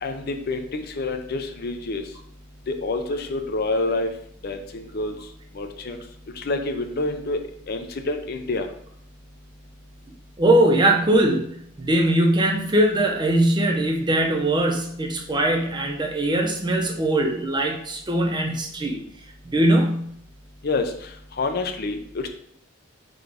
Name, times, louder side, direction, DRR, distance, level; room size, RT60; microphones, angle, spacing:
voice 1, 0.0-2.0 2.7-4.1 4.4-5.1 5.5-6.0 6.4-7.4 7.7-8.7 20.6-20.9 21.4-22.3, left 2 dB, 50° left, 6 dB, 0.5 m, -27 dB
voice 2, 10.4-19.0 19.4-20.1, right 1 dB, 20° right, 2 dB, 0.6 m, -21 dB
3.8 x 3.7 x 3.4 m, 0.70 s
head